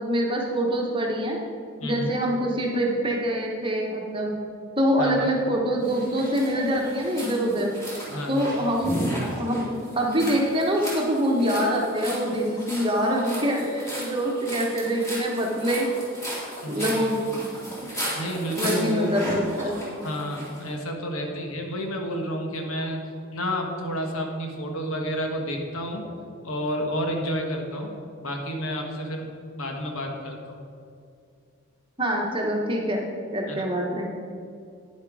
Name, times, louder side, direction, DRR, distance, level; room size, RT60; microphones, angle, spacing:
voice 1, 0.0-1.4 1.8-4.4 4.8-7.7 8.3-9.0 9.4-15.9 16.6-17.3 18.5-19.8 32.0-33.0 33.3-34.1, equal, 20° right, 0 dB, 1.1 m, -25 dB
voice 2, 1.8-2.1 5.0-5.3 8.1-8.4 16.6-17.1 18.1-19.1 20.0-23.0 23.3-26.1 26.4-30.6 33.5-33.7, equal, 75° left, 2 dB, 1.3 m, -30 dB
sound 1, 5.8-20.6, equal, 15° left, 2.4 m, -35 dB
9.7 x 7.5 x 4.8 m, 2.3 s
head